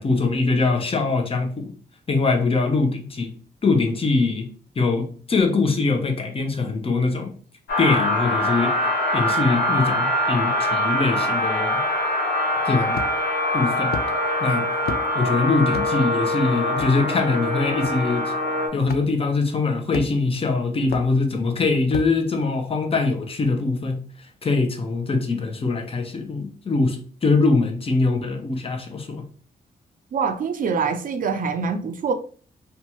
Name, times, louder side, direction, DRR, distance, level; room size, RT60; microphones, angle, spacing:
voice 1, 0.0-1.7 2.1-3.3 3.6-4.5 4.8-7.3 7.8-8.7 9.1-11.8 12.6-13.0 13.5-13.9 14.4-14.7 15.1-18.3 18.7-29.2, left 3 dB, 35° left, 0.7 m, -22 dB
sound 1, 7.7-18.7, left 1 dB, 80° left, 0.8 m, -23 dB
sound 2, 12.9-13.3 13.9-14.1 14.9-15.1 15.7-15.9 16.8-16.9 17.8-17.9 18.9-19.0 19.9-20.3 20.9-21.1 21.9-22.1, left 6 dB, 65° left, 0.4 m, -30 dB
voice 2, 30.1-32.1, right 5 dB, 55° right, 0.4 m, -24 dB
2.7 x 2.3 x 2.9 m
cardioid pair, 95°, 17 cm